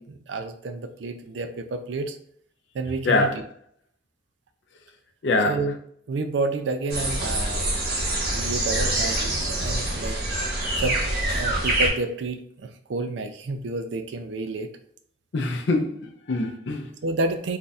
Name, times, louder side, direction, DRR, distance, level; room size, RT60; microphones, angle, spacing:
voice 1, 0.0-2.2 2.7-3.4 5.5-5.8 6.1-7.7 8.3-10.2 10.8-11.0 11.3-14.7 17.0-17.6, right 3 dB, 70° right, 0.4 m, -30 dB
voice 2, 3.0-3.4 5.2-5.6 15.3-16.9, left 2 dB, 65° left, 0.5 m, -24 dB
sound 1, 6.9-11.9, right 1 dB, 55° right, 1.1 m, -25 dB
2.6 x 2.4 x 4.0 m
head